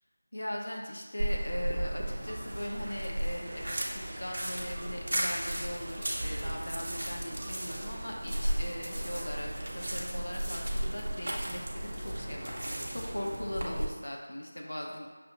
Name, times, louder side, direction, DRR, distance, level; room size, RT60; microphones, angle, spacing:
voice 1, 0.3-3.7 4.2-9.5 9.7-15.1, left 1 dB, 80° left, 0 dB, 0.7 m, -39 dB
sound 1, 1.2-13.9, right 1 dB, 65° right, 0.7 m, -35 dB
sound 2, 2.1-13.4, right 1 dB, 25° right, 0.3 m, -48 dB
5.9 x 2.0 x 3.8 m, 1.4 s
figure-of-eight pair, 175°, 0 cm